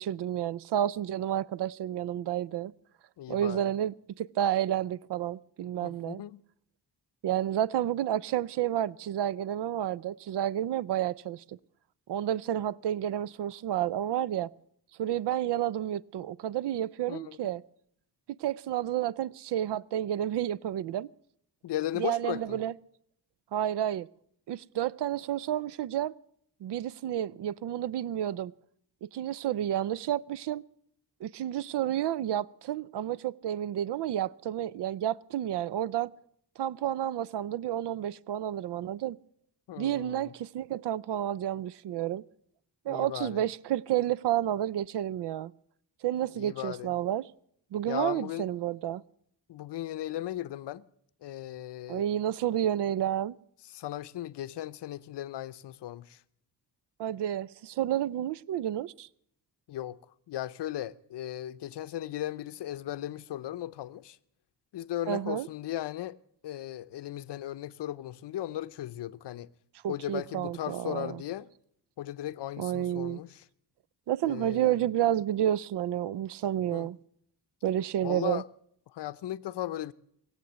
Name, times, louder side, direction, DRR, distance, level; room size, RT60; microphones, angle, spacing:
voice 1, 0.0-2.7 3.3-6.2 7.2-11.6 12.1-14.5 15.0-17.6 18.4-21.1 21.9-22.7 23.5-24.1 24.5-26.1 26.6-28.5 29.0-30.6 31.2-36.1 36.6-39.2 39.8-42.2 42.9-45.5 46.0-47.2 47.7-49.0 51.9-53.3 57.0-59.1 65.1-65.5 69.8-71.2 72.6-73.2 74.1-77.0 77.6-78.4, right 11 dB, 85° right, 0.5 m, -30 dB
voice 2, 3.2-3.6 5.8-6.4 17.1-17.5 21.6-22.6 39.7-40.3 42.9-43.4 46.3-46.9 47.9-48.5 49.5-50.8 51.2-52.1 53.6-56.2 59.7-60.0 60.3-64.2 64.7-66.2 66.4-69.5 69.9-71.5 72.0-73.5 74.3-74.8 76.7-76.9 78.0-78.5 78.9-79.9, left 13 dB, 90° left, 0.6 m, -37 dB
19.0 x 8.3 x 8.0 m
wide cardioid pair, 125°, 40 cm